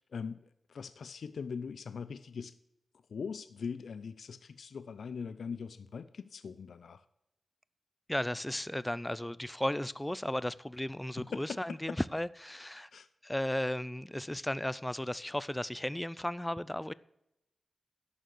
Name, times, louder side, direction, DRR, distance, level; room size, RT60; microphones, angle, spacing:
voice 1, 0.0-2.6 3.1-7.0 11.2-12.0 12.9-13.1, left 5 dB, 80° left, 0.5 m, -41 dB
voice 2, 8.1-12.9 13.2-16.9, left 1 dB, 10° left, 0.5 m, -35 dB
11.0 x 6.5 x 6.7 m
cardioid pair, 75°, 0 cm